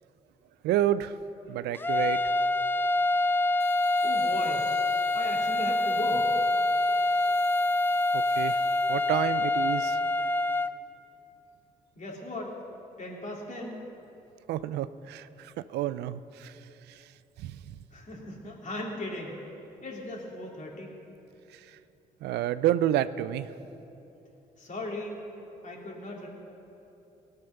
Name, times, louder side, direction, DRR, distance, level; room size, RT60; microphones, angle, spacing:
voice 1, 0.6-1.1 1.5-2.2 8.1-8.6 8.9-10.0 14.5-16.5 16.9-17.0 17.4-17.8 21.5-21.6 22.2-23.5, right 12 dB, 80° right, 15 dB, 0.4 m, -29 dB
Small Shofar, 1.7-10.7, left 2 dB, 10° left, 0.4 m, -26 dB
sound 1, 3.6-9.4, left 5 dB, 70° left, 1.6 m, -53 dB
voice 2, 4.0-4.7 5.1-6.3 11.9-12.5 13.0-13.8 17.9-19.4 19.8-20.9 24.6-25.2 25.6-26.3, left 2 dB, 50° left, -2 dB, 3.1 m, -37 dB
18.0 x 6.7 x 5.8 m, 3.0 s
supercardioid pair, 55°, 17 cm